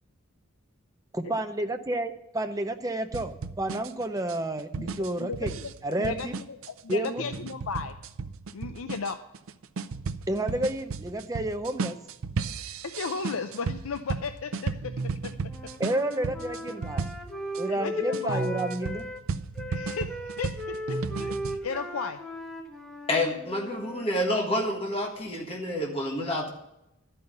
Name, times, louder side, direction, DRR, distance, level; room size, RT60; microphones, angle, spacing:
voice 1, 1.1-5.6 5.8-6.4 6.9-7.2 10.3-12.0 15.8-17.1 17.6-19.1, right 1 dB, 15° right, 8 dB, 0.6 m, -30 dB
sound 1, 3.1-17.6 18.1-21.6, right 4 dB, 75° right, 0.5 m, -35 dB
voice 2, 5.2-5.7 6.0-6.3 6.7-8.0 8.5-9.2 12.8-15.4 17.7-18.5 19.7-22.2, left 5 dB, 80° left, 9 dB, 0.5 m, -35 dB
Wind instrument woodwind instrument, 15.4-19.2 19.6-24.1, equal, 5° left, 1.3 m, -37 dB
voice 3, 23.1-26.5, left 1 dB, 25° left, 0 dB, 1.6 m, -28 dB
12.0 x 5.6 x 7.9 m, 0.86 s
head